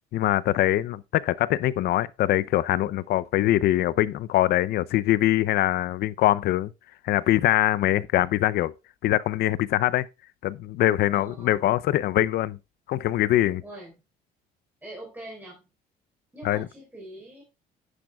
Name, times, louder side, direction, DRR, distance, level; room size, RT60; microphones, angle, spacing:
voice 1, 0.1-6.7 7.0-8.7 9.0-10.1 10.4-12.6 12.9-13.6 16.4-16.7, left 14 dB, 70° left, 0.6 m, -23 dB
voice 2, 11.1-11.8 13.6-13.9 14.8-15.6 16.3-17.4, right 1 dB, 10° right, 4.2 m, -43 dB
10.5 x 9.9 x 2.3 m
cardioid pair, 110°, 17 cm